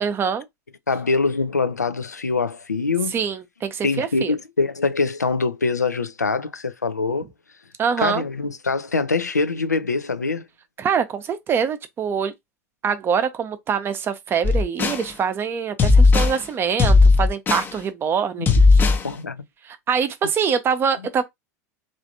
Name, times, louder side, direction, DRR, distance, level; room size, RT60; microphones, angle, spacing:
voice 1, 0.0-0.4 3.1-4.3 7.8-8.2 10.8-12.3 12.8-18.5 19.7-21.2, right 7 dB, 25° right, 0.6 m, -24 dB
voice 2, 0.9-3.1 3.8-7.3 8.0-10.5 18.4-18.5 19.0-19.4, left 4 dB, 85° left, 0.4 m, -24 dB
sound 1, 14.4-15.1 15.8-16.4 16.8-17.7 18.5-19.1, left 3 dB, 20° left, 0.6 m, -15 dB
3.2 x 2.5 x 2.6 m
figure-of-eight pair, 80°, 9 cm